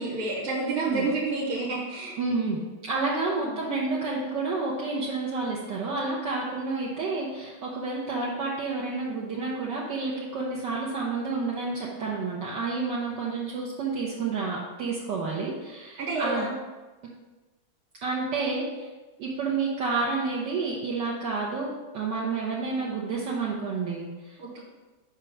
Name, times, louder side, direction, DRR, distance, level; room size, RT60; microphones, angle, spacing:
voice 1, 0.0-2.2 3.4-3.6 16.0-16.6 24.4-24.6, right 3 dB, 90° right, -4 dB, 2.3 m, -29 dB
voice 2, 2.2-16.5 18.0-18.9 19.2-24.6, right 3 dB, 65° right, -4 dB, 1.4 m, -30 dB
5.1 x 4.5 x 5.9 m, 1.2 s
omnidirectional pair, 2.3 m